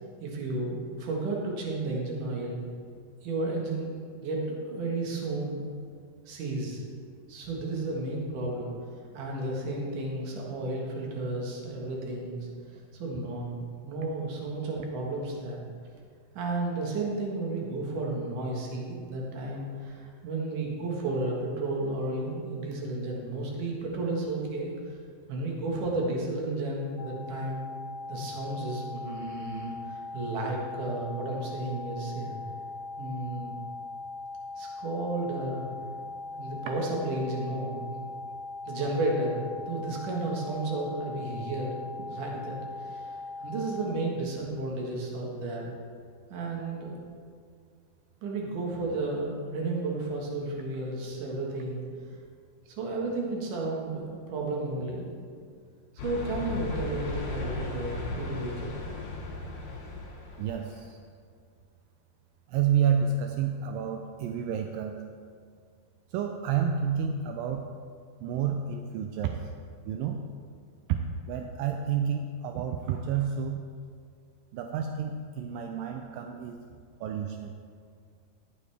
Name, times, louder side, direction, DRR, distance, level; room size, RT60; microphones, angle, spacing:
voice 1, 0.2-2.6 3.2-5.6 6.3-6.8 7.3-8.7 9.1-12.4 12.7-15.6 16.3-25.0 25.3-27.7 28.1-32.4 33.0-33.6 34.6-35.7 36.3-37.9 38.7-41.8 42.1-45.7 46.3-47.0 48.2-51.9 52.7-55.2 56.0-58.8, right 2 dB, 60° right, -1 dB, 2.8 m, -33 dB
sound 1, 27.0-43.9, left 3 dB, 80° left, 2.0 m, -40 dB
sound 2, 56.0-60.9, left 3 dB, 65° left, 3.3 m, -36 dB
voice 2, 60.4-61.0 62.5-64.9 66.1-67.7 68.2-69.4 69.9-70.2 70.9-71.0 71.3-73.6 74.5-76.6 77.0-77.5, right 7 dB, 90° right, 4 dB, 1.9 m, -29 dB
13.5 x 8.9 x 3.4 m, 2.1 s
omnidirectional pair, 4.6 m